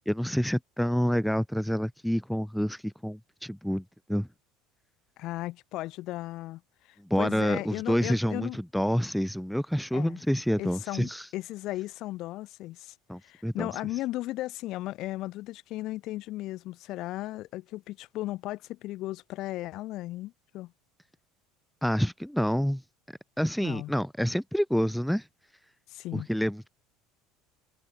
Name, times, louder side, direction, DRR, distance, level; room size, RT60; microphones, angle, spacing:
voice 1, 0.1-3.8 4.1-4.3 7.1-11.3 13.1-13.7 21.8-22.8 23.4-25.3 26.1-26.7, equal, ahead, 1.1 m, -28 dB
voice 2, 5.2-6.6 6.9-8.6 9.9-10.2 10.6-12.9 13.2-20.7 23.6-23.9 25.9-26.3, left 17 dB, 50° left, 6.1 m, -36 dB
cardioid pair, 145°, 0 cm